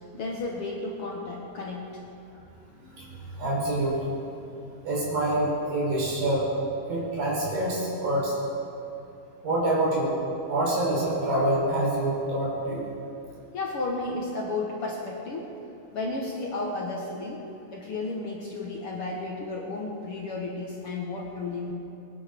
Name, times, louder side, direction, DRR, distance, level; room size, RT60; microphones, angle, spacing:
voice 1, 0.1-2.0 13.5-15.5 15.9-17.4 17.7-21.7, left 3 dB, 55° left, -1 dB, 1.8 m, -33 dB
voice 2, 3.4-4.0 4.8-6.5 6.9-8.4 9.4-10.1 10.4-12.9, right 1 dB, 80° right, -4 dB, 6.0 m, -26 dB
21.5 x 11.5 x 5.2 m, 2.7 s
omnidirectional pair, 4.0 m